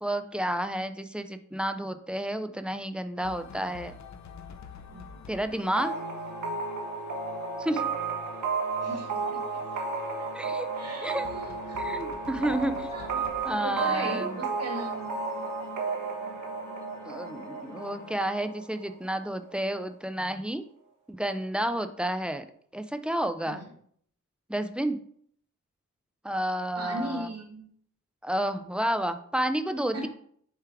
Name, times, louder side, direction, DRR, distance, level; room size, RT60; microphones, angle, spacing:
voice 1, 0.0-3.9 5.3-6.0 7.6-7.8 10.3-10.7 11.0-11.3 11.8-12.9 13.4-14.4 17.0-20.6 21.1-22.4 22.7-23.7 24.5-25.0 26.2-27.3 28.2-30.1, right 1 dB, 5° right, 9 dB, 0.4 m, -30 dB
sound 1, 3.2-18.2, left 5 dB, 65° left, 0.6 m, -46 dB
sound 2, 5.8-19.3, right 4 dB, 80° right, 1.1 m, -33 dB
voice 2, 8.8-9.6 10.2-11.8 12.9-15.2 23.5-23.6 26.8-27.7 29.9-30.1, right 1 dB, 55° right, 1 dB, 1.7 m, -38 dB
6.7 x 3.5 x 4.7 m, 0.63 s
wide cardioid pair, 155°, 31 cm